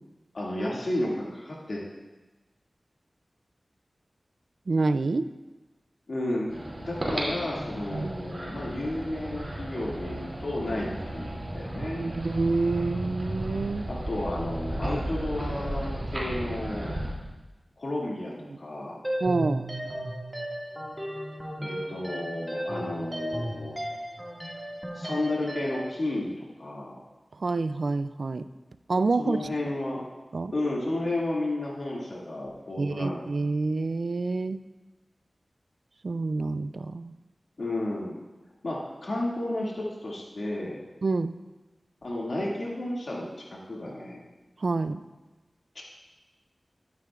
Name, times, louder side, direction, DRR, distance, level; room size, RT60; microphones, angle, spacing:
voice 1, 0.3-1.8 6.1-6.5 6.8-12.0 13.9-16.9 17.8-19.0 21.6-23.7 24.9-27.0 29.2-30.0 30.5-33.2 37.6-38.2 38.6-40.8 42.0-44.2 45.7-45.8, left 1 dB, 70° left, -4 dB, 2.2 m, -32 dB
voice 2, 4.7-5.3 7.9-8.1 12.0-13.9 18.5-18.6 19.2-19.6 27.4-28.5 28.9-29.4 30.3-30.5 32.8-34.6 36.0-37.1 41.0-41.4 44.6-45.0, right 3 dB, 75° right, 12 dB, 0.3 m, -27 dB
sound 1, 6.5-17.1, right 1 dB, 55° right, 2.7 m, -34 dB
sound 2, 19.0-25.9, equal, 15° right, 2.0 m, -35 dB
12.0 x 9.4 x 2.5 m, 1.1 s
cardioid pair, 40°, 0 cm